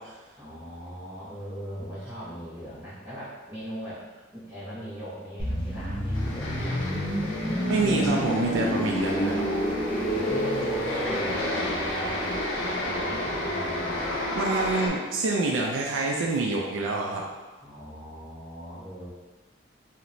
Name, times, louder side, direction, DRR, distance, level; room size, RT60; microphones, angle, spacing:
voice 1, 0.4-4.0 4.3-6.8 9.8-14.2 17.6-19.1, equal, 15° right, -15 dB, 0.7 m, -40 dB
sound 1, 5.4-15.1 15.3-15.5, equal, 25° left, 0.4 m, -30 dB
sound 2, 6.1-14.9, left 1 dB, 80° left, 0.6 m, -32 dB
voice 2, 7.7-9.4 14.3-17.2, right 3 dB, 80° right, -1 dB, 0.3 m, -26 dB
2.9 x 2.1 x 2.5 m, 1.3 s
head